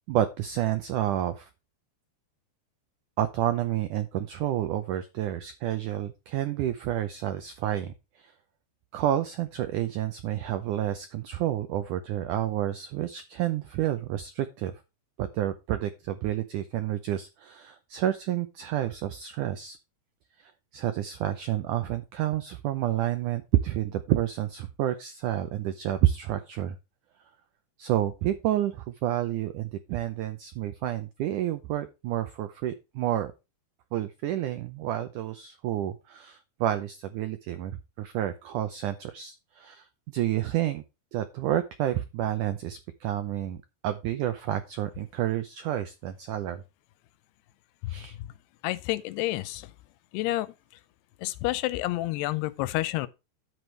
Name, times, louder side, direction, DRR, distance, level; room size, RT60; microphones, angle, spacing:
voice 1, 0.1-1.5 3.2-8.3 8.9-14.7 15.2-19.8 20.4-26.8 27.8-33.3 33.9-40.8 41.1-43.6 43.8-46.6 47.9-48.2, right 12 dB, 85° right, 1.8 m, -29 dB
voice 2, 48.6-49.7 50.1-50.5 51.2-53.1, left 17 dB, 90° left, 2.7 m, -29 dB
10.5 x 8.0 x 3.3 m
omnidirectional pair, 4.6 m